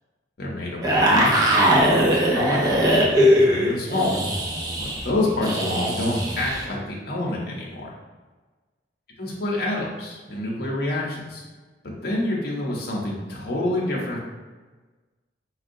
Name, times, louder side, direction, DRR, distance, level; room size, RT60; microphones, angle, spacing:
voice 1, 0.4-3.1 3.4-4.1 5.0-7.9 9.2-11.4 11.8-14.2, left 1 dB, 60° left, -3 dB, 0.7 m, -27 dB
sound 1, 0.8-6.6, equal, 20° right, 0.5 m, -20 dB
4.4 x 2.3 x 2.5 m, 1.3 s
head